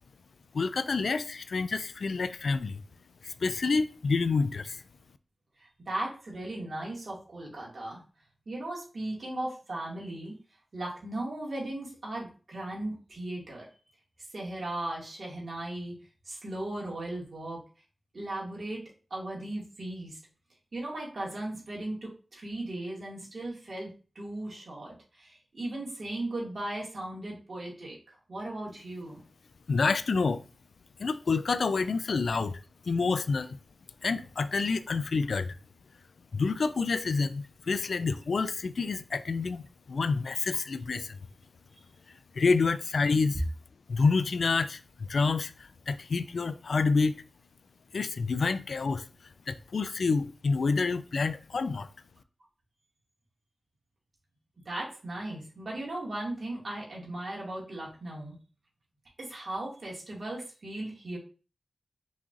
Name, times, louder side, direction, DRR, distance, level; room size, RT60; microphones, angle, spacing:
voice 1, 0.5-2.8 3.2-4.8 29.7-30.4 31.0-32.6 32.9-33.6 34.0-35.5 36.3-41.2 42.1-43.4 43.9-47.2 47.9-49.0 49.5-51.9, left 4 dB, 75° left, 0.3 m, -28 dB
voice 2, 5.6-8.0 8.5-10.3 10.7-13.6 14.2-16.0 16.2-17.6 18.1-18.8 19.1-20.2 20.7-29.2 40.5-40.6 54.7-58.4 59.2-61.2, right 1 dB, 60° right, 2.1 m, -37 dB
5.6 x 3.0 x 2.5 m
cardioid pair, 45°, 0 cm